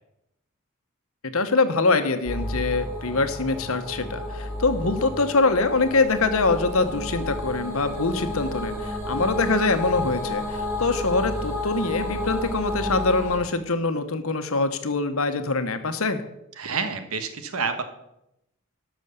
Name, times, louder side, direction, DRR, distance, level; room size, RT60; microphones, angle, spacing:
voice 1, 1.3-16.2, left 3 dB, 75° left, 9 dB, 1.1 m, -24 dB
sound 1, 2.2-13.4, left 1 dB, 10° right, 4.8 m, -31 dB
voice 2, 16.6-17.8, right 5 dB, 85° right, 8 dB, 1.4 m, -28 dB
12.0 x 6.3 x 6.9 m, 0.85 s
head